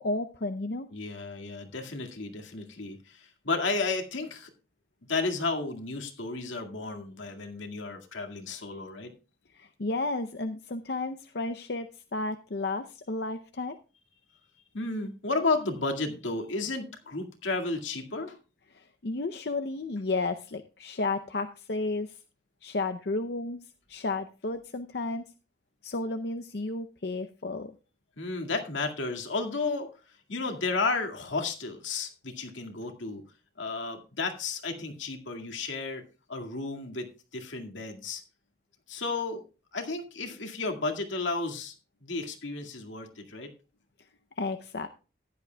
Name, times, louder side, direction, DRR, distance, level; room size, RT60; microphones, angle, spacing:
voice 1, 0.0-0.9 9.5-13.8 18.7-22.1 22.6-23.6 23.9-25.2 25.8-27.7 44.4-44.9, left 3 dB, 55° left, 7 dB, 0.6 m, -32 dB
voice 2, 0.9-4.5 5.1-9.1 14.7-18.4 28.2-33.2 33.6-36.0 36.3-38.2 38.9-39.4 39.7-41.7 42.0-43.5, left 3 dB, 85° left, 4 dB, 2.1 m, -33 dB
15.0 x 11.0 x 2.3 m, 0.32 s
head